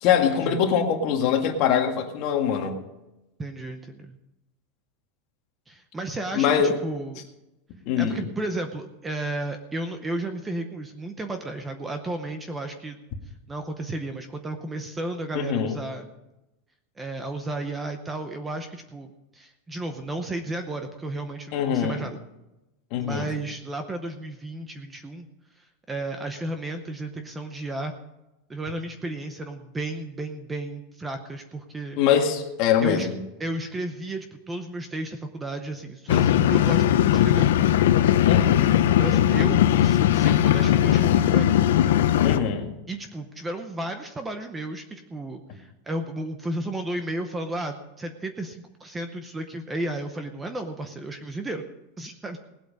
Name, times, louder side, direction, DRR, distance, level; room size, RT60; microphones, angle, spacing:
voice 1, 0.0-2.8 6.3-6.8 7.9-8.2 15.3-15.8 21.5-22.0 22.9-23.3 32.0-33.2 38.3-38.8 42.2-42.7, left 8 dB, 40° left, 3 dB, 1.8 m, -23 dB
voice 2, 3.4-4.2 5.7-7.3 8.0-13.0 13.5-16.1 17.0-19.1 19.3-22.2 23.0-25.3 25.6-27.9 28.5-32.0 32.8-33.1 33.4-37.5 38.9-41.5 41.8-42.0 42.9-51.6 52.0-52.4, right 2 dB, 10° right, 7 dB, 0.7 m, -33 dB
sound 1, 36.1-42.4, left 11 dB, 80° left, 0.8 m, -19 dB
19.0 x 8.3 x 5.3 m, 0.95 s
supercardioid pair, 180°, 0 cm